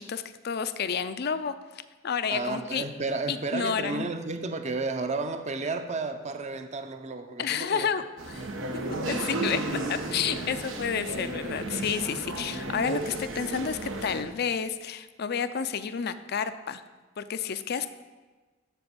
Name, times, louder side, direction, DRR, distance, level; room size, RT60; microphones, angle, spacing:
voice 1, 0.0-1.5 2.0-2.8 3.3-4.1 7.4-8.5 9.1-16.8 17.2-17.9, left 6 dB, 55° left, 11 dB, 0.5 m, -30 dB
voice 2, 2.3-7.9 8.3-8.5, right 3 dB, 35° right, 8 dB, 0.7 m, -32 dB
sound 1, 8.2-14.2, right 2 dB, 90° right, 1.1 m, -33 dB
9.0 x 5.9 x 7.0 m, 1.3 s
head